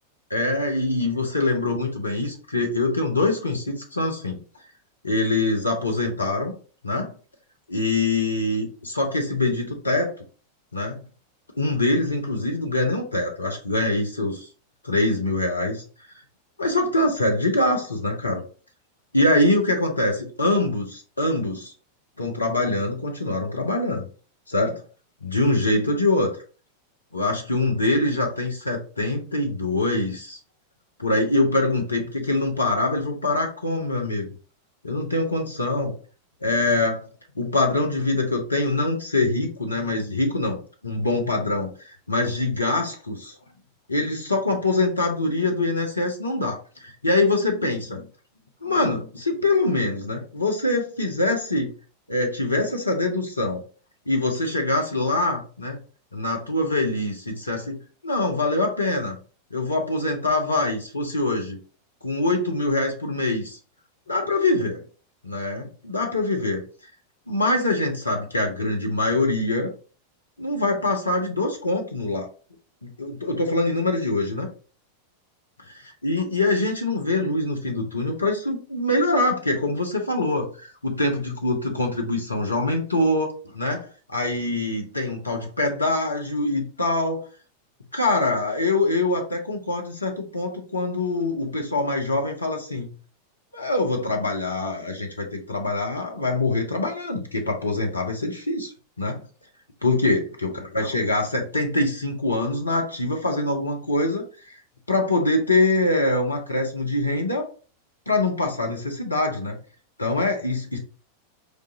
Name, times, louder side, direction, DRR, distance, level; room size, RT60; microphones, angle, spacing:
voice 1, 0.3-4.4 5.0-6.5 6.8-7.1 7.7-10.2 10.7-11.0 11.6-14.5 14.8-15.8 16.6-18.4 19.1-21.7 22.2-24.0 24.5-24.8 25.2-26.3 27.1-30.4 31.0-34.3 34.8-35.9 36.4-37.0 37.3-43.4 43.9-48.0 48.6-51.7 52.1-53.6 54.1-55.8 56.1-57.8 58.0-59.2 59.5-61.6 62.0-63.6 64.1-64.8 65.2-66.6 67.3-69.7 70.4-72.3 72.8-74.5 76.0-87.3 87.9-92.9 93.5-98.7 99.0-99.2 99.8-104.6 104.9-107.5 108.1-109.6 110.0-110.8, left 2 dB, 80° left, 2 dB, 0.8 m, -24 dB
4.8 x 2.5 x 2.8 m, 0.38 s
figure-of-eight pair, 90°, 0 cm